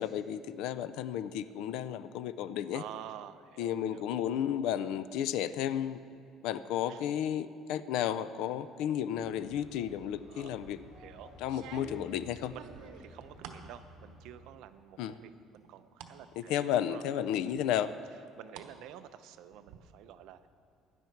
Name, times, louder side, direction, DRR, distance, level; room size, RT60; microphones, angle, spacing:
voice 1, 0.0-2.8 3.6-6.0 6.4-10.8 11.4-12.5 15.0-15.1 16.4-17.9, left 10 dB, 75° left, 14 dB, 0.4 m, -33 dB
voice 2, 2.7-4.1 6.9-7.1 10.2-11.3 12.5-17.0 17.7-18.0 18.4-20.5, right 11 dB, 70° right, 11 dB, 0.6 m, -50 dB
sound 1, 9.1-14.6, left 1 dB, 50° left, 3.5 m, -55 dB
sound 2, 10.4-10.8 11.4-13.7 14.1-14.7 15.1-16.2 16.6-16.7 17.6-18.7 19.0-19.8, right 8 dB, 85° right, 1.0 m, -50 dB
16.0 x 11.0 x 4.6 m, 2.3 s
cardioid pair, 170°, 0 cm